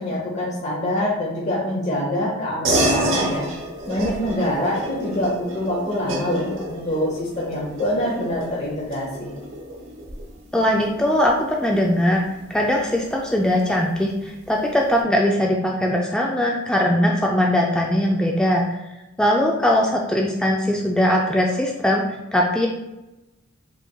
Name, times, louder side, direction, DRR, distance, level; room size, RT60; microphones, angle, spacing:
voice 1, 0.0-3.4 3.9-9.3, left 1 dB, 35° left, -6 dB, 0.8 m, -25 dB
sound 1, 2.6-12.5, right 1 dB, 65° right, 0.9 m, -29 dB
voice 2, 10.5-12.2 12.5-18.8 19.2-22.0 22.3-22.7, left 1 dB, 5° left, -1 dB, 0.3 m, -20 dB
4.7 x 3.9 x 2.2 m, 0.96 s
head